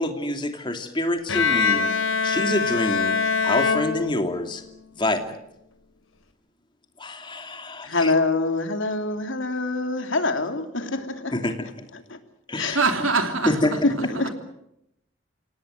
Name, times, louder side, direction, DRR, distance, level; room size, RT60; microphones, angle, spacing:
voice 1, 0.0-1.9 2.2-3.2 3.4-4.6 4.9-5.3 7.0-8.1 11.3-11.9 12.5-12.8 13.4-13.7, left 1 dB, 25° left, 2.7 m, -26 dB
Bowed string instrument, 1.3-4.6, left 5 dB, 90° left, 3.3 m, -24 dB
voice 2, 7.8-11.5 11.9-12.2 12.6-12.8 13.8-14.3, left 2 dB, 75° left, 2.9 m, -25 dB
voice 3, 12.7-13.8 14.1-14.3, right 3 dB, 85° right, 3.3 m, -24 dB
27.5 x 18.5 x 7.9 m
head